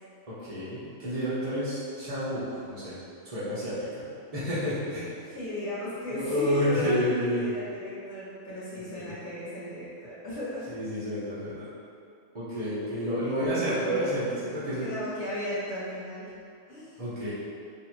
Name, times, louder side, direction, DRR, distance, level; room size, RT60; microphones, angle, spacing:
voice 1, 0.3-3.0 3.2-4.1 4.3-5.1 6.1-7.4 8.9-9.1 10.7-11.6 12.3-14.9 17.0-17.3, equal, 35° right, -12 dB, 0.8 m, -30 dB
voice 2, 5.2-10.7 13.2-16.4 16.7-17.0, left 1 dB, 50° left, -11 dB, 1.6 m, -36 dB
3.0 x 2.9 x 4.4 m, 2.5 s
omnidirectional pair, 1.4 m